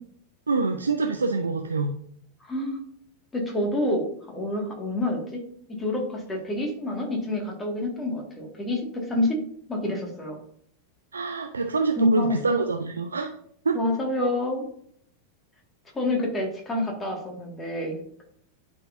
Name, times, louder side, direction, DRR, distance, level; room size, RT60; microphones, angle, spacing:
voice 1, 0.5-1.9 11.1-13.3 13.6-13.8, right 4 dB, 75° right, 5 dB, 0.5 m, -26 dB
voice 2, 2.4-2.8 3.3-5.4 5.8-9.4 9.7-10.4 12.0-12.4 13.7-14.7 15.9-18.2, left 1 dB, 15° left, 0 dB, 2.0 m, -27 dB
11.0 x 4.5 x 2.7 m, 0.64 s
figure-of-eight pair, 90°, 0 cm